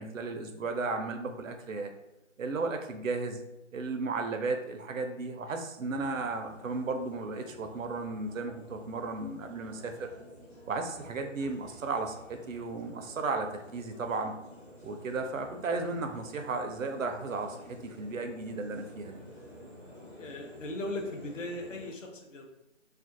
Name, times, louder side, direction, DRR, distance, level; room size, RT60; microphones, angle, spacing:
voice 1, 0.0-1.9 2.4-3.4 3.7-10.1 10.7-14.3 14.8-19.2, right 3 dB, 80° right, 6 dB, 0.5 m, -34 dB
sound 1, 5.9-21.9, equal, 25° left, 0.5 m, -51 dB
voice 2, 20.2-22.5, left 1 dB, 75° left, 1 dB, 0.7 m, -38 dB
2.5 x 2.3 x 2.5 m, 0.92 s
figure-of-eight pair, 150°, 38 cm